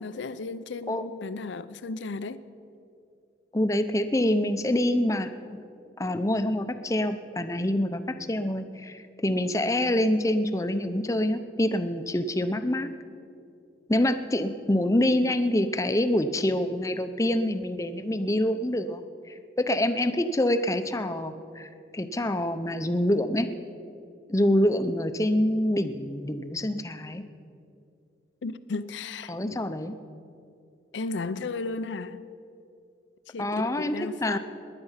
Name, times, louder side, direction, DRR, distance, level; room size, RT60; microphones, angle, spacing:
voice 1, 0.0-2.4 28.4-29.6 30.9-32.3 33.3-34.4, left 3 dB, 85° left, 0.5 m, -35 dB
voice 2, 3.5-5.3 6.0-12.9 13.9-23.5 24.3-27.2 29.3-29.9 33.4-34.4, left 1 dB, 15° left, 0.6 m, -26 dB
19.0 x 11.0 x 5.7 m
head